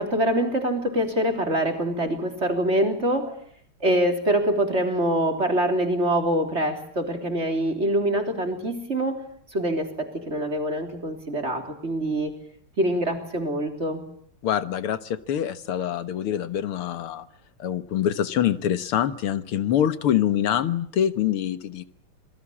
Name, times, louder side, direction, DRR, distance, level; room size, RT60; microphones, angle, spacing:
voice 1, 0.0-3.4 3.8-9.2 9.5-12.3 12.8-14.0, right 1 dB, 30° right, 6 dB, 3.9 m, -24 dB
voice 2, 14.4-17.3 17.6-21.8, left 10 dB, 85° left, 13 dB, 2.3 m, -25 dB
27.0 x 22.0 x 8.7 m, 0.62 s
omnidirectional pair, 2.3 m